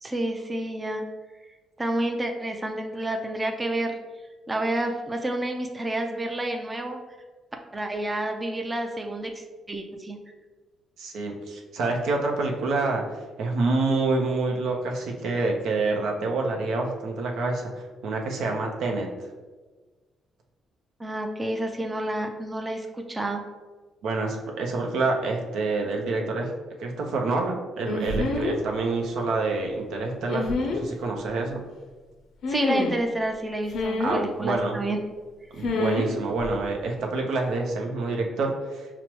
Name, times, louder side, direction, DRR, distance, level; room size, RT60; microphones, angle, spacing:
voice 1, 0.0-1.0 1.8-4.0 4.5-7.0 7.7-10.2 21.0-23.4 32.5-35.0, right 1 dB, 20° right, 4 dB, 0.4 m, -29 dB
voice 2, 11.0-13.0 13.4-19.1 24.0-26.5 26.8-31.6 34.0-34.8 35.5-38.9, right 3 dB, 80° right, 1 dB, 0.6 m, -27 dB
sound 1, 27.9-28.6 30.3-30.8 32.4-33.0 33.7-34.2 35.6-36.1 36.4-36.6, left 2 dB, 75° left, 0.5 m, -27 dB
5.8 x 2.0 x 3.0 m, 1.3 s
cardioid pair, 90°, 0 cm